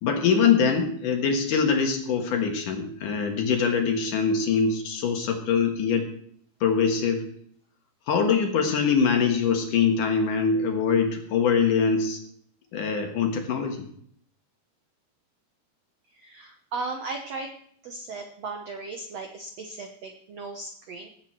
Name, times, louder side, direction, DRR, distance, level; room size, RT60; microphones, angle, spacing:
voice 1, 0.0-6.0 6.6-7.3 8.1-12.2 12.7-13.8, left 6 dB, 60° left, 3 dB, 2.8 m, -23 dB
voice 2, 16.1-17.5 17.8-21.1, right 3 dB, 75° right, 4 dB, 1.5 m, -36 dB
18.0 x 8.3 x 4.6 m, 0.64 s
omnidirectional pair, 4.6 m